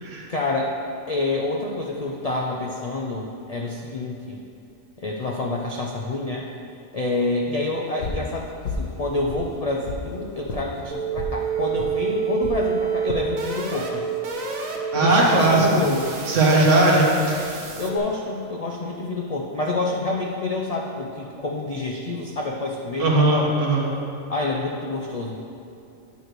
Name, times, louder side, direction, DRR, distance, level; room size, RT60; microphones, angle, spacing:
voice 1, 0.3-0.8 1.1-4.4 5.0-6.5 6.9-14.1 14.9-16.1 17.8-23.5 24.3-25.4, left 2 dB, 65° left, -1 dB, 0.3 m, -27 dB
sound 1, 8.0-8.3 8.6-8.9 9.3-10.1 10.5-10.6 11.2-11.4 11.8-11.9 12.4-12.6 13.1-13.3 13.8-14.2, left 3 dB, 85° left, 1.2 m, -31 dB
sound 2, 10.9-18.0, right 6 dB, 85° right, 1.2 m, -28 dB
voice 2, 14.9-15.9 16.3-17.4 23.0-23.9, right 2 dB, 65° right, -2 dB, 1.5 m, -18 dB
9.3 x 3.1 x 6.6 m, 2.7 s
omnidirectional pair, 1.4 m